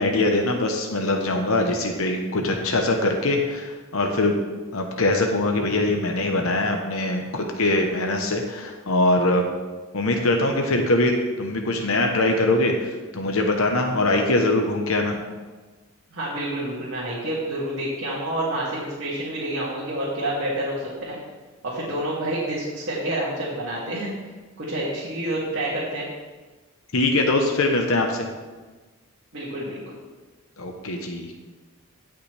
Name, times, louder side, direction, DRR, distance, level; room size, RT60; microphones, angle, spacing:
voice 1, 0.0-4.4 4.7-9.4 9.9-15.2 26.9-28.3 30.6-31.3, left 2 dB, 70° left, 3 dB, 1.0 m, -22 dB
voice 2, 16.1-21.2 21.6-24.1 24.6-26.1 29.3-29.9, right 1 dB, 60° right, -8 dB, 2.4 m, -28 dB
17.0 x 5.8 x 3.4 m, 1.3 s
head